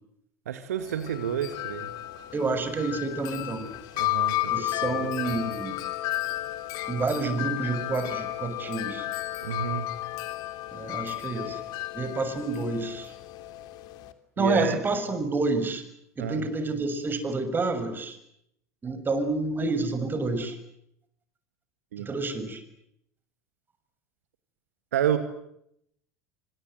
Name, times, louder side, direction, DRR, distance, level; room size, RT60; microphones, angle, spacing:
voice 1, 0.5-1.9 4.0-5.5 9.4-9.9 14.4-14.8 16.2-16.4 21.9-22.1 24.9-25.2, right 9 dB, 75° right, 9 dB, 2.2 m, -30 dB
Wind chime, 0.8-14.1, left 15 dB, 55° left, 3.0 m, -33 dB
voice 2, 2.3-3.7 4.4-5.7 6.9-9.1 10.7-11.6 11.9-13.1 14.4-15.8 16.2-18.2 18.8-20.6 22.0-22.6, right 3 dB, 25° right, 9 dB, 6.8 m, -29 dB
28.5 x 25.5 x 7.9 m, 0.75 s
figure-of-eight pair, 75°, 8 cm